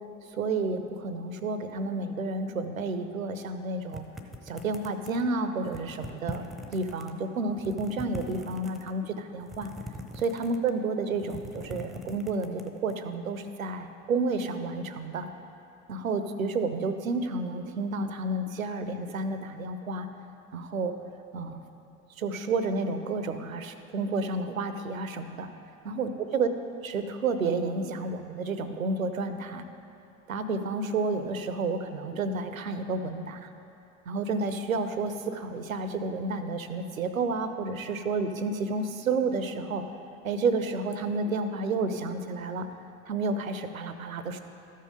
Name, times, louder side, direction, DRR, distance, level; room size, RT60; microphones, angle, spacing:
voice 1, 0.3-4.0 4.5-6.4 6.7-9.7 10.2-15.3 15.9-20.1 20.5-20.9 21.3-21.6 22.2-25.5 25.9-26.5 26.8-29.6 30.3-33.5 34.1-39.8 40.2-42.7 43.1-44.4, right 3 dB, 85° right, 9 dB, 0.6 m, -30 dB
sound 1, 3.9-5.3 5.6-7.1 7.5-8.9 9.4-10.8 11.1-12.9, equal, ahead, 0.7 m, -42 dB
13.0 x 5.6 x 4.9 m, 2.7 s
figure-of-eight pair, 60°, 40 cm